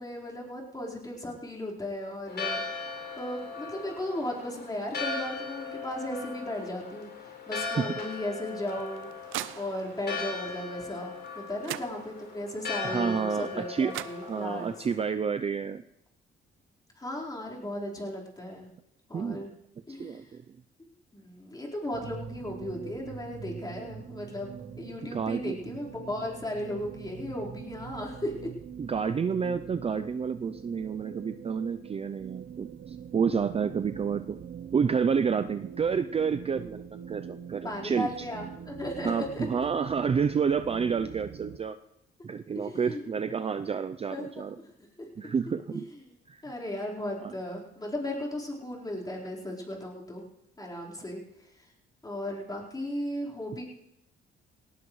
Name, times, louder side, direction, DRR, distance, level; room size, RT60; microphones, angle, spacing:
voice 1, 0.0-2.6 3.2-14.7 17.0-18.7 19.1-19.5 19.9-20.3 21.1-28.5 37.6-39.5 42.5-43.0 44.1-44.9 45.7-46.2 46.4-50.2 50.6-51.2 51.6-51.7 52.0-53.6, left 1 dB, 20° left, -3 dB, 4.4 m, -36 dB
Church bell, 2.3-14.9, left 4 dB, 55° left, 4.1 m, -38 dB
sound 1, 8.5-10.1 11.3-11.4 11.6-12.5 13.6-13.7 13.9-14.8, right 14 dB, 85° right, 0.5 m, -40 dB
voice 2, 12.8-13.9 14.2-15.8 19.1-19.4 19.9-20.4 25.1-25.6 28.8-34.4 34.7-38.1 39.0-41.8 42.2-44.5 45.2-45.9 46.3-46.4 47.2-47.3, right 6 dB, 30° right, 10 dB, 0.5 m, -29 dB
sound 2, 21.9-41.6, right 8 dB, 50° right, 0.9 m, -44 dB
18.0 x 18.0 x 3.2 m, 0.82 s
cardioid pair, 90°, 20 cm